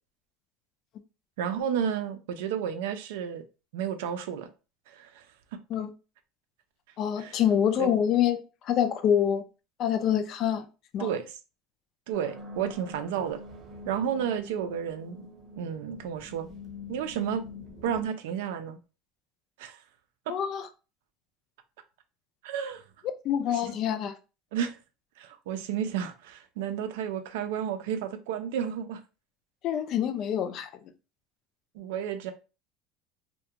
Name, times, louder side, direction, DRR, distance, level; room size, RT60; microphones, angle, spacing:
voice 1, 1.4-3.4 3.7-4.5 4.9-5.3 7.2-7.4 7.8-7.9 11.0-11.3 12.1-13.4 13.9-15.2 15.6-16.5 16.9-17.4 17.8-18.8 19.6-19.8 20.3-20.4 22.4-22.8 23.5-23.6 24.5-24.8 25.2-29.0 31.7-32.3, right 8 dB, 85° right, 0.4 m, -32 dB
voice 2, 7.0-9.4 9.8-10.7 10.9-11.1 20.3-20.7 23.2-24.2 29.6-30.7, left 9 dB, 45° left, 0.4 m, -26 dB
sound 1, 12.1-18.1, left 2 dB, 30° right, 0.8 m, -45 dB
2.4 x 2.2 x 2.8 m
supercardioid pair, 140°, 0 cm